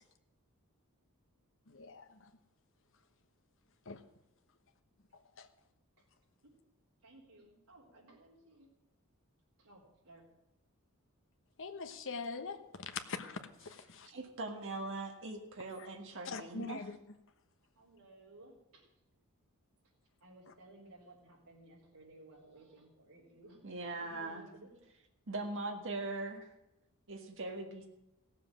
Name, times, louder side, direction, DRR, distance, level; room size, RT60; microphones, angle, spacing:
voice 1, 1.7-2.3 3.9-4.0 5.4-5.5 11.6-14.1 16.2-17.0, left 4 dB, 60° left, 8 dB, 1.1 m, -43 dB
voice 2, 7.0-8.7 9.6-10.3 17.8-18.9 20.2-23.6 24.0-24.8, right 1 dB, 75° right, -6 dB, 3.7 m, -58 dB
voice 3, 14.1-16.8 23.6-24.5 25.3-26.5 27.1-27.9, right 2 dB, 60° right, 2 dB, 1.6 m, -41 dB
16.5 x 7.4 x 7.5 m, 0.92 s
head